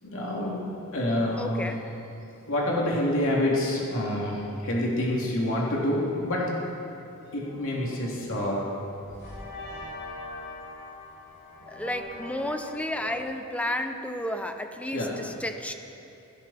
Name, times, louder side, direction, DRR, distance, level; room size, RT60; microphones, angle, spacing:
voice 1, 0.0-1.7 2.5-6.6 7.3-8.7 14.9-15.2, left 1 dB, 65° left, -4 dB, 3.0 m, -27 dB
voice 2, 1.4-1.9 11.7-15.7, left 1 dB, 5° left, 6 dB, 0.9 m, -32 dB
sound 1, 7.4-13.2, left 2 dB, 50° left, 4.4 m, -42 dB
18.5 x 17.5 x 4.4 m, 2.7 s
head